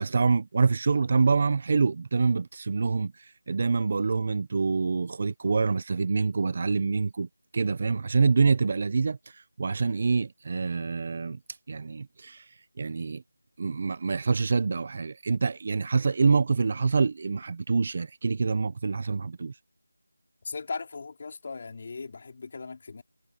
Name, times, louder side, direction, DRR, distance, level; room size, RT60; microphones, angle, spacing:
voice 1, 0.0-7.3 7.5-11.4 11.7-13.2 13.6-19.6, right 4 dB, 25° right, 0.9 m, -26 dB
voice 2, 20.4-23.0, left 4 dB, 30° left, 4.9 m, -38 dB
figure-of-eight pair, 175°, 0 cm